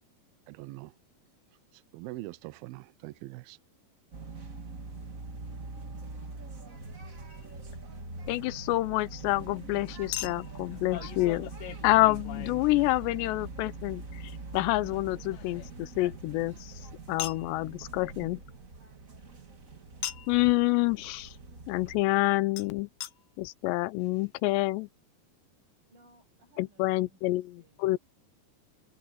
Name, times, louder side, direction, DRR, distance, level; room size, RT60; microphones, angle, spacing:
voice 1, 0.5-0.9 1.7-3.6, right 19 dB, 80° right, 2.3 m, -43 dB
sound 1, 4.1-22.0, right 3 dB, 40° right, 1.2 m, -43 dB
Chink clink, 7.3-7.5 10.1-13.3 14.9-16.6 17.2-17.5 20.0-20.4 22.6-22.7 23.0-23.1 23.8-23.9 24.0-24.1, left 14 dB, 70° left, 2.3 m, -40 dB
voice 2, 8.3-11.5 11.8-14.0 14.5-16.7 17.1-18.4 20.3-21.3 21.7-22.9 23.4-24.9 26.6-28.0, left 19 dB, 90° left, 2.9 m, -27 dB
voice 3, 25.9-28.0, right 1 dB, 55° right, 9.5 m, -63 dB
omnidirectional pair, 4.9 m